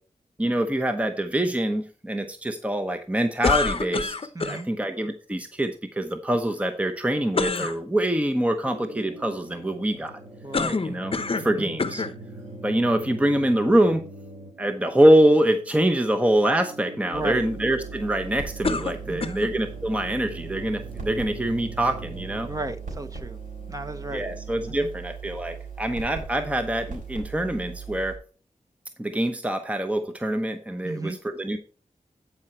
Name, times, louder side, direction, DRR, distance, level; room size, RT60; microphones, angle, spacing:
voice 1, 0.4-10.2 10.8-12.0 12.6-14.0 14.6-22.5 24.1-28.2 29.0-31.6, right 1 dB, 10° right, 7 dB, 0.9 m, -24 dB
sound 1, 3.4-4.6 7.3-7.8 10.5-11.5 11.8-12.2 13.0-13.1 18.6-19.6, left 4 dB, 45° left, 0.8 m, -26 dB
voice 2, 4.3-4.7 10.4-10.8 11.4-11.7 17.1-17.4 19.1-19.4 22.4-23.4 23.7-24.2 24.7-24.9 30.8-31.2, right 2 dB, 25° right, 8 dB, 1.1 m, -33 dB
sound 2, 8.6-24.8, right 1 dB, 55° right, 2.8 m, -43 dB
sound 3, 17.1-28.2, right 6 dB, 75° right, 3.8 m, -39 dB
10.5 x 4.9 x 4.5 m, 0.37 s
cardioid pair, 65°, 13 cm